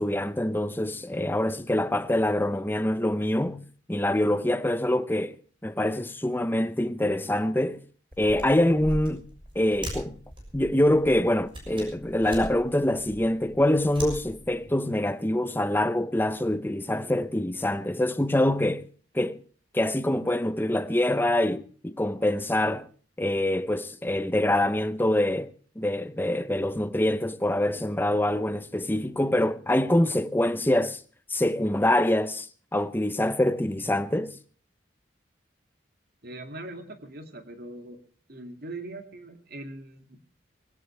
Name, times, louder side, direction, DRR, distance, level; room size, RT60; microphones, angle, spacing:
voice 1, 0.0-3.6 3.9-5.4 5.6-7.8 8.2-9.2 9.5-10.2 10.5-18.8 19.1-19.4 19.7-22.9 23.2-31.0 31.3-32.5 32.7-34.4, left 1 dB, 10° left, 0.7 m, -25 dB
sound 1, 8.1-14.8, equal, 25° right, 6.5 m, -40 dB
voice 2, 36.2-38.0 38.3-40.2, right 2 dB, 50° right, 2.4 m, -41 dB
20.5 x 17.5 x 3.3 m
head